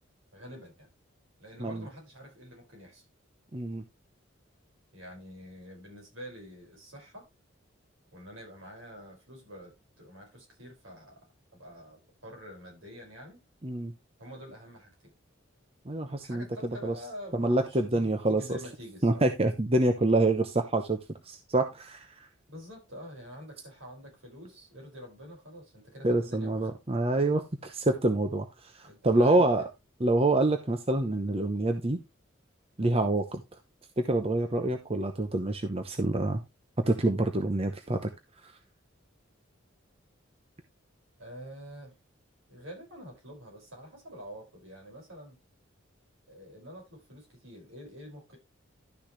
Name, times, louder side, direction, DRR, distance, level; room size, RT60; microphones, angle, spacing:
voice 1, 0.3-0.9 1.4-3.0 4.9-7.3 8.1-11.3 11.5-13.4 14.2-14.9 16.2-19.3 22.5-26.7 28.8-29.7 41.2-41.9 42.5-45.4 46.3-48.4, equal, 80° right, 5.7 m, -46 dB
voice 2, 3.5-3.8 13.6-13.9 15.9-16.4 16.8-16.9 17.3-18.6 19.0-21.0 21.3-22.1 26.0-29.7 30.0-32.0 32.8-33.4 34.0-36.4 36.9-38.0, right 2 dB, 30° right, 0.8 m, -26 dB
12.0 x 6.4 x 3.2 m
head